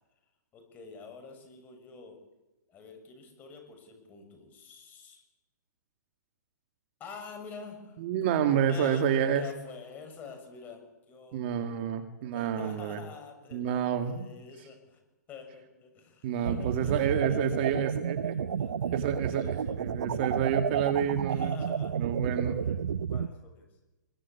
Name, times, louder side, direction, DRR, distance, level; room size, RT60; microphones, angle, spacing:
voice 1, 0.5-2.2 2.7-5.2 7.0-8.0 8.7-10.8 11.1-12.0 12.2-15.0 15.3-19.8 21.3-22.1 22.5-22.8 23.1-23.7, left 5 dB, 15° left, 4 dB, 7.0 m, -47 dB
voice 2, 8.0-9.5 11.3-13.0 13.5-14.3 16.2-18.3 18.9-21.6 21.9-22.6, right 8 dB, 35° right, 7 dB, 2.3 m, -29 dB
sound 1, 16.4-23.3, right 7 dB, 70° right, 1.0 m, -31 dB
24.5 x 23.0 x 8.5 m, 1.0 s
hypercardioid pair, 155°, 10 cm